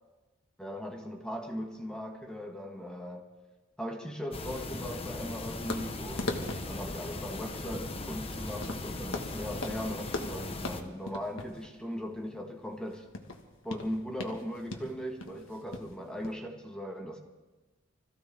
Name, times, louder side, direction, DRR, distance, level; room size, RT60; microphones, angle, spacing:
voice 1, 0.6-3.3 3.8-13.1 13.6-17.2, equal, 5° left, 1 dB, 1.5 m, -39 dB
sound 1, 4.3-10.8, left 2 dB, 30° left, 1.0 m, -39 dB
sound 2, 5.7-16.3, left 2 dB, 80° left, 1.6 m, -40 dB
25.0 x 15.0 x 3.5 m, 1.2 s
head